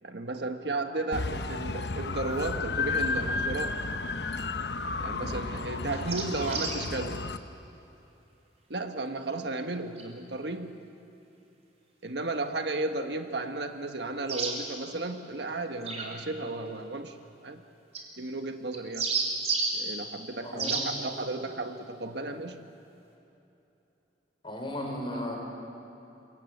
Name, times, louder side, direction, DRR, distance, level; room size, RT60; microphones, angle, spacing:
voice 1, 0.0-3.8 5.0-7.2 8.7-10.7 12.0-17.2 17.4-17.6 18.2-19.1 19.7-22.6 25.1-25.2, right 2 dB, 70° right, 6 dB, 1.5 m, -34 dB
sound 1, 1.1-7.4, left 3 dB, 70° left, 1.1 m, -32 dB
sound 2, 5.9-6.8 10.0-10.1 14.3-14.5 15.8-16.1 17.9-18.0 18.7-19.7 20.6-20.8, right 4 dB, 40° right, 4.1 m, -30 dB
voice 2, 20.4-20.9 24.4-25.4, left 1 dB, 30° left, 1 dB, 5.4 m, -36 dB
27.0 x 23.0 x 8.0 m, 2.9 s
head